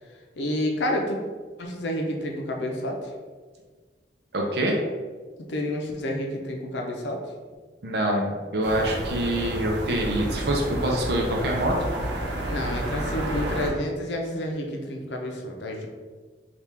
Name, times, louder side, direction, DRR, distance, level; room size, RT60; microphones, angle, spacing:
voice 1, 0.4-1.2 1.6-3.1 5.5-7.2 12.5-15.9, left 1 dB, 80° left, 1 dB, 0.6 m, -29 dB
voice 2, 4.3-4.8 7.8-11.8, right 1 dB, 65° right, 0 dB, 0.5 m, -25 dB
sound 1, 8.6-13.7, right 1 dB, 85° right, 0.9 m, -30 dB
3.5 x 2.4 x 4.2 m, 1.4 s
head